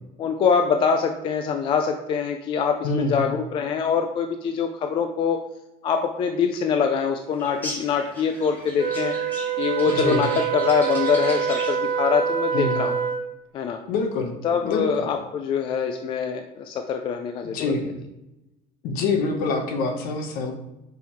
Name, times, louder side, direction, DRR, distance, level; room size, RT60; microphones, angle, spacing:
voice 1, 0.2-5.4 5.8-9.2 9.6-12.9 13.5-13.8 14.4-17.7, left 6 dB, 30° left, 5 dB, 0.4 m, -24 dB
voice 2, 2.8-3.2 9.9-10.3 12.5-12.8 13.9-14.4 14.6-14.9 17.4-17.9 18.8-20.5, left 3 dB, 55° left, 5 dB, 1.0 m, -25 dB
sound 1, 7.4-11.9, left 1 dB, 10° left, 1.5 m, -37 dB
Wind instrument woodwind instrument, 8.8-13.4, right 7 dB, 45° right, 0.7 m, -26 dB
5.4 x 4.4 x 4.5 m, 0.94 s
cardioid pair, 165°, 18 cm